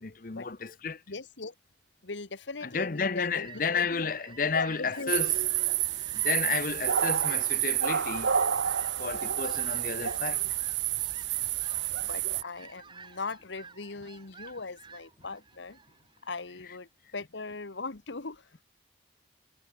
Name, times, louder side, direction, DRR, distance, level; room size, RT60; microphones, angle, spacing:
voice 1, 0.0-1.0 2.6-5.3 6.1-8.3 9.0-10.4, left 5 dB, 45° left, 0.8 m, -32 dB
voice 2, 1.1-1.5 2.0-4.1 4.5-5.1 12.1-15.8 16.2-18.6, left 3 dB, 80° left, 1.3 m, -39 dB
Fowl, 2.9-16.8, right 5 dB, 25° right, 3.4 m, -52 dB
sound 1, 5.1-12.4, right 10 dB, 75° right, 1.0 m, -29 dB
head